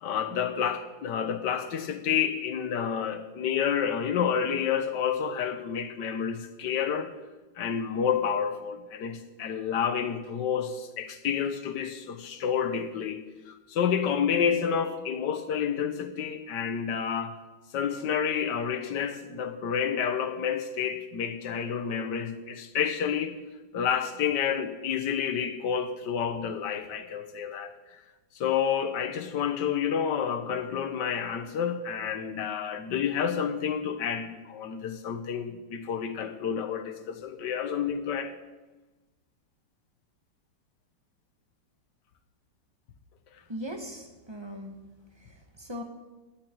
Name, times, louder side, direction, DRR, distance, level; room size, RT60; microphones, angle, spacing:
voice 1, 0.0-7.1 7.6-13.2 13.5-17.4 17.7-23.3 23.7-27.7 28.3-38.3, left 7 dB, 65° left, 8 dB, 1.6 m, -29 dB
voice 2, 43.5-44.8 45.2-45.8, equal, 15° right, 3 dB, 1.5 m, -39 dB
18.0 x 11.5 x 4.6 m, 1.2 s
omnidirectional pair, 2.1 m